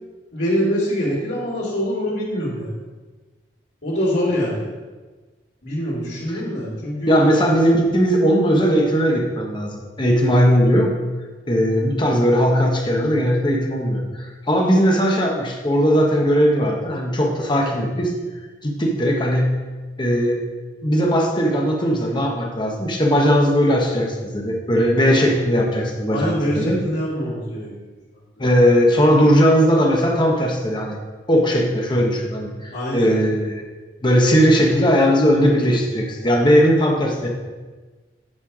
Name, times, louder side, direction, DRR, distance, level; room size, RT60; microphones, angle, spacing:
voice 1, 0.3-2.7 3.8-4.7 5.6-7.2 26.1-27.7 28.4-28.5 32.7-33.1, equal, 75° left, -7 dB, 2.6 m, -24 dB
voice 2, 7.1-10.9 11.5-18.1 18.6-19.5 20.0-20.4 20.8-26.8 28.4-31.0 31.3-33.6 34.0-37.3, equal, 25° left, 0 dB, 1.1 m, -18 dB
8.7 x 4.5 x 4.9 m, 1.3 s
head